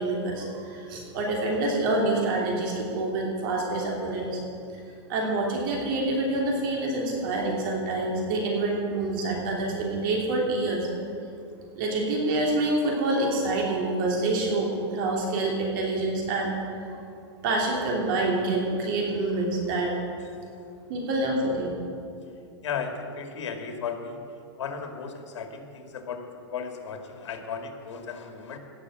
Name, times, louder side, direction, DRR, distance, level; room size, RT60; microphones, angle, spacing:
voice 1, 0.0-4.4 5.1-10.9 11.7-16.6 17.4-19.9 20.9-21.7, right 2 dB, 45° right, -1 dB, 3.0 m, -27 dB
voice 2, 22.6-24.2 24.6-28.6, left 6 dB, 80° left, 5 dB, 2.0 m, -35 dB
17.0 x 6.7 x 7.3 m, 2.4 s
supercardioid pair, 160°, 15 cm